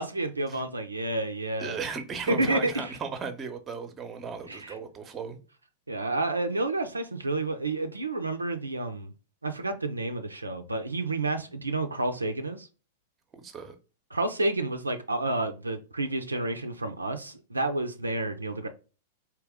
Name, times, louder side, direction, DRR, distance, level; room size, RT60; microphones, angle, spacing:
voice 1, 0.0-1.8 2.3-3.0 4.5-4.8 5.9-9.1 9.4-12.7 14.1-18.7, right 2 dB, 90° right, 0.5 m, -30 dB
voice 2, 1.6-5.4 13.4-13.7, right 5 dB, 25° right, 0.7 m, -36 dB
3.5 x 2.9 x 3.5 m
figure-of-eight pair, 100°, 0 cm